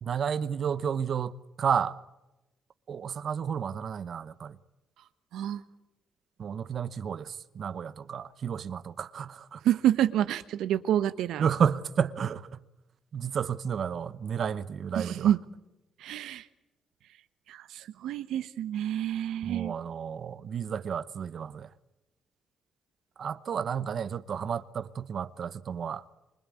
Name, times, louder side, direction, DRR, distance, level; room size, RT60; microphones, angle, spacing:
voice 1, 0.0-2.0 2.9-4.6 6.4-9.6 11.4-12.6 13.1-15.3 19.4-21.7 23.2-26.0, right 7 dB, 60° right, 0.9 m, -31 dB
voice 2, 9.6-11.5 14.9-15.4 16.0-16.4 17.5-19.7, right 11 dB, 80° right, 1.1 m, -28 dB
25.5 x 24.0 x 8.4 m
supercardioid pair, 70°, 0 cm